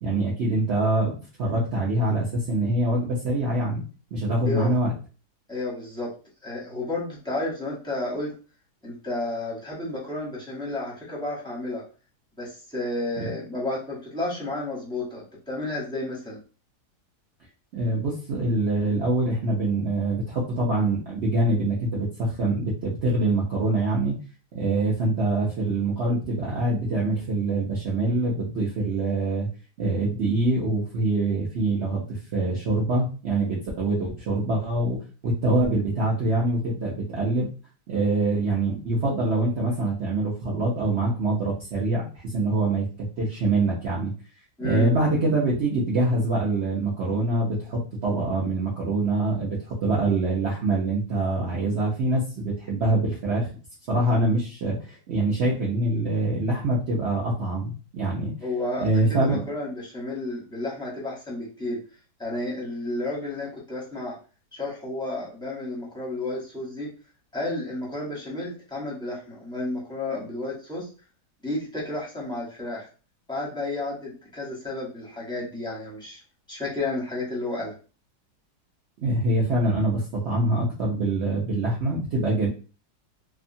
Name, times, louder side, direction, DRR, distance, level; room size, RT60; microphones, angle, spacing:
voice 1, 0.0-3.8 4.1-4.9 13.2-13.3 17.7-24.2 24.5-29.5 29.8-37.5 37.9-42.9 43.2-44.1 44.6-53.5 53.9-58.3 58.8-59.4 79.0-82.5, right 2 dB, 60° right, -5 dB, 0.7 m, -24 dB
voice 2, 5.5-6.1 6.4-8.3 8.8-11.8 12.4-16.4 44.6-44.9 58.4-61.8 62.2-64.2 64.5-66.9 67.3-70.9 71.4-72.9 73.3-76.2 76.5-77.7, left 2 dB, 5° left, -5 dB, 0.6 m, -31 dB
2.8 x 2.3 x 2.6 m, 0.36 s
omnidirectional pair, 1.8 m